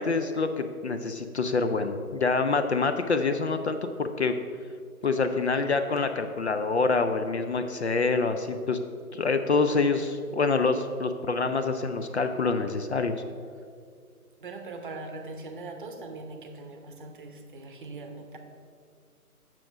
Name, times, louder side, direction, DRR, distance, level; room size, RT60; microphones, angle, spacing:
voice 1, 0.0-4.3 5.0-8.8 9.1-13.2, left 4 dB, 50° left, 8 dB, 0.5 m, -26 dB
voice 2, 14.4-18.4, right 3 dB, 35° right, 5 dB, 0.8 m, -41 dB
7.5 x 6.1 x 4.9 m, 2.2 s
figure-of-eight pair, 145°, 45 cm